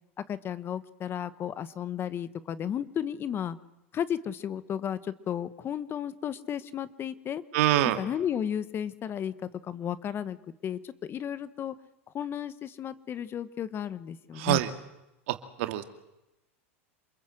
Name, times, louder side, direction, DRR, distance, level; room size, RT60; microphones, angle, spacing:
voice 1, 0.3-3.6 3.9-7.4 8.0-10.4 10.6-11.7 12.1-14.6, left 9 dB, 30° left, 14 dB, 1.4 m, -33 dB
voice 2, 7.5-8.0 14.3-14.7 15.3-15.8, right 15 dB, 65° right, 8 dB, 2.5 m, -25 dB
27.5 x 21.5 x 7.9 m, 0.93 s
hypercardioid pair, 110°, 7 cm